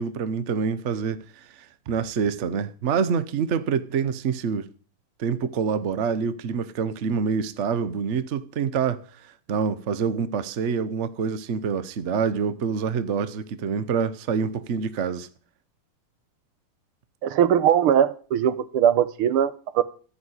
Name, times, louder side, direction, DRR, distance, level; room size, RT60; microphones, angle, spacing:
voice 1, 0.0-4.7 5.2-15.3, right 6 dB, 60° right, 0.7 m, -26 dB
voice 2, 17.2-19.8, right 9 dB, 85° right, 1.8 m, -20 dB
14.5 x 5.8 x 9.6 m
omnidirectional pair, 2.3 m